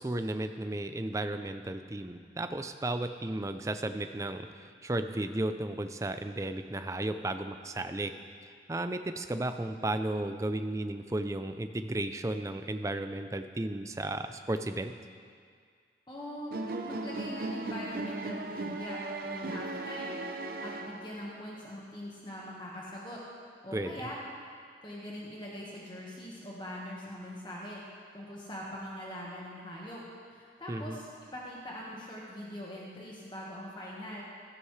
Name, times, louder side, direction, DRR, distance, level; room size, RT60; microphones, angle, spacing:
voice 1, 0.0-8.2 8.5-14.9 23.7-23.9 30.7-31.0, right 1 dB, 20° right, 8 dB, 0.4 m, -34 dB
voice 2, 16.1-16.6 16.8-23.2 23.6-24.2 24.8-30.0 30.3-34.2, equal, 25° left, -5 dB, 1.5 m, -42 dB
sound 1, 16.5-21.4, right 2 dB, 55° right, 0.7 m, -37 dB
16.0 x 13.0 x 3.3 m, 2.1 s
head